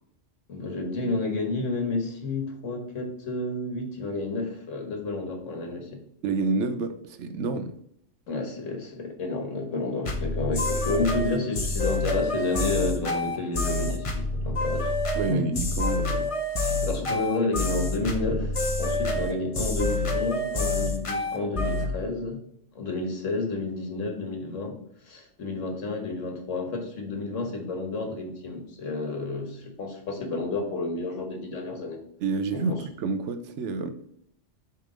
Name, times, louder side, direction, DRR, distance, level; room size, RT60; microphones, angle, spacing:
voice 1, 0.5-6.0 8.3-14.9 15.3-15.6 16.6-22.4 22.7-24.8 25.0-32.0 32.5-32.8, left 3 dB, 80° left, 2 dB, 1.6 m, -30 dB
voice 2, 6.2-7.7 15.1-16.3 16.7-16.8 32.2-33.9, right 4 dB, 75° right, 9 dB, 0.9 m, -28 dB
sound 1, 10.1-21.9, left 2 dB, 35° left, 0.6 m, -27 dB
6.8 x 3.4 x 4.9 m, 0.71 s
omnidirectional pair, 1.3 m